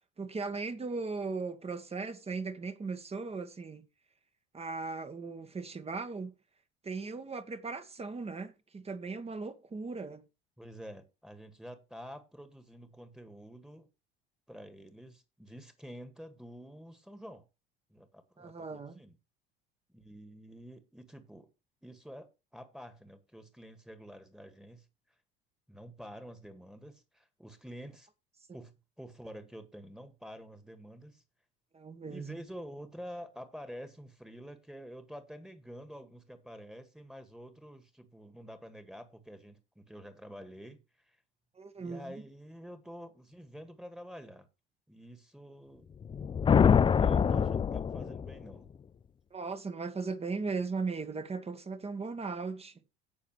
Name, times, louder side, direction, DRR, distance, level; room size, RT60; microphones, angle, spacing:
voice 1, 0.2-3.8 4.5-6.3 6.8-10.2 18.4-19.0 31.7-32.4 41.5-42.1 49.3-52.7, right 4 dB, 20° right, 1.4 m, -38 dB
voice 2, 10.6-13.9 14.5-17.4 17.9-19.2 19.9-21.5 21.8-24.9 25.7-28.1 28.5-28.7 29.0-31.2 32.1-41.2 41.8-44.5 44.9-45.9 47.0-48.7, equal, ahead, 1.9 m, -48 dB
sound 1, 46.0-48.5, left 7 dB, 15° left, 0.5 m, -25 dB
17.0 x 6.5 x 3.2 m
figure-of-eight pair, 65°, 30 cm